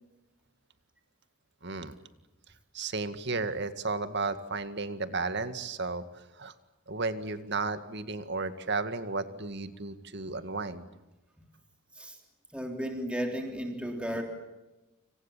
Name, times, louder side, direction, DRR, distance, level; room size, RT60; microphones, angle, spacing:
voice 1, 1.6-2.0 2.7-6.0 6.4-6.5 6.9-10.8, right 3 dB, 55° right, 11 dB, 2.0 m, -33 dB
voice 2, 12.5-14.2, equal, 5° right, 3 dB, 3.6 m, -34 dB
29.0 x 27.5 x 7.4 m, 1.0 s
head